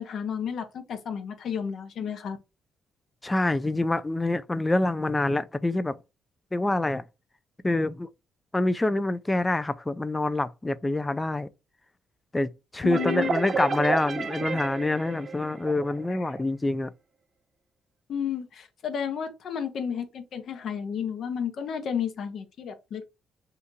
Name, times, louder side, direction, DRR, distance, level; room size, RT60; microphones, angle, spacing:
voice 1, 0.0-2.4 12.8-13.3 16.1-16.3 18.1-23.1, left 7 dB, 65° left, 0.7 m, -32 dB
voice 2, 3.2-5.9 6.5-7.0 7.6-8.1 8.5-11.5 12.3-16.9, left 2 dB, 15° left, 0.4 m, -26 dB
sound 1, 12.9-16.4, right 4 dB, 45° right, 0.5 m, -31 dB
2.8 x 2.6 x 3.6 m
cardioid pair, 90°, 0 cm